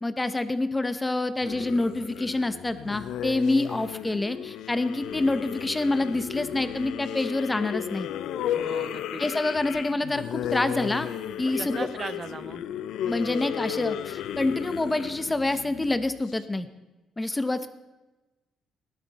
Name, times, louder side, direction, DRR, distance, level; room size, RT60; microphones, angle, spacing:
voice 1, 0.0-8.1 9.2-11.1 11.4-11.9 13.1-16.7 17.2-17.7, left 2 dB, 15° left, 11 dB, 0.9 m, -27 dB
sound 1, 1.4-16.3, left 10 dB, 80° left, 0.5 m, -34 dB
voice 2, 8.5-9.2 11.6-12.6, right 4 dB, 35° right, 14 dB, 0.5 m, -37 dB
16.0 x 11.5 x 4.2 m, 1.1 s
cardioid pair, 90°, 0 cm